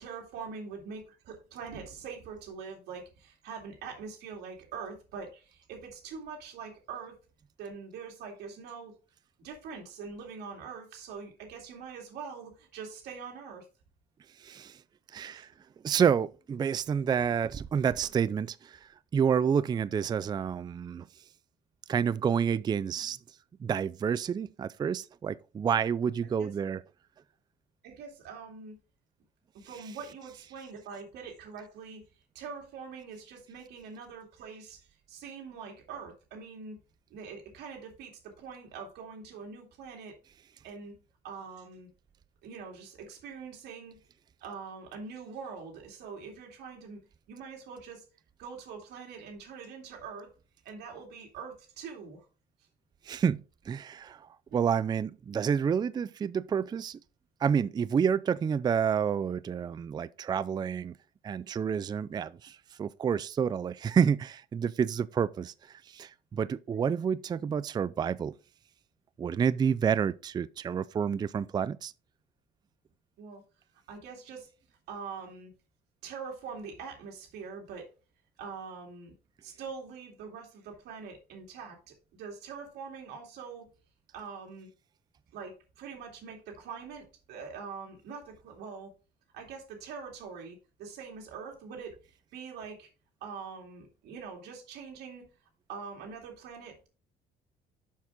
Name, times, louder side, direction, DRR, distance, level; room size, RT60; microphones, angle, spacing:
voice 1, 0.0-7.2 7.6-8.9 9.4-13.7 26.2-26.5 27.8-28.7 29.6-32.1 32.3-36.8 37.1-40.2 40.6-40.9 41.2-41.9 42.4-43.9 44.4-47.0 47.3-48.0 48.4-50.3 50.6-52.3 54.5-54.8 73.2-73.4 73.9-74.5 74.9-75.5 76.0-77.9 78.4-79.1 79.4-83.6 84.1-84.7 85.3-88.9 89.3-92.9 93.2-95.3 95.7-96.9, right 5 dB, 75° right, 2.5 m, -43 dB
voice 2, 14.4-14.8 15.1-15.5 15.8-21.1 21.9-23.2 23.6-26.8 53.0-57.0 57.4-60.9 61.2-68.3 69.2-71.9, right 7 dB, 25° right, 0.3 m, -29 dB
7.2 x 6.0 x 3.8 m
cardioid pair, 110°, 17 cm